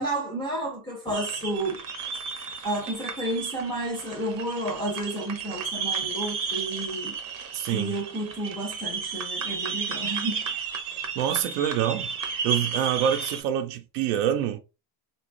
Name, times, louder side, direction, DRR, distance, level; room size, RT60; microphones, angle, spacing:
voice 1, 0.0-1.8 2.6-7.2 7.7-10.4, right 1 dB, 10° left, 0.4 m, -31 dB
sound 1, 1.1-13.4, right 5 dB, 45° right, 0.7 m, -33 dB
voice 2, 7.5-8.0 11.2-12.1 12.4-14.6, right 10 dB, 85° right, 0.6 m, -26 dB
3.8 x 2.2 x 2.4 m
cardioid pair, 165°, 49 cm